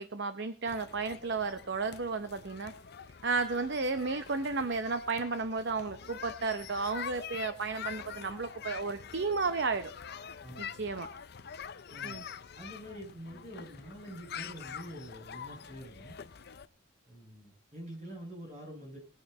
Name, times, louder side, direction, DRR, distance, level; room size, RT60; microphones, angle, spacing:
voice 1, 0.0-2.7 3.2-9.9 10.7-11.1 12.0-12.2, right 4 dB, 55° right, 10 dB, 0.7 m, -33 dB
sound 1, 0.7-16.7, left 7 dB, 50° left, 0.6 m, -45 dB
voice 2, 11.9-12.2 12.6-16.2 17.1-19.0, equal, 35° right, -1 dB, 7.4 m, -46 dB
20.0 x 8.9 x 4.2 m, 0.38 s
head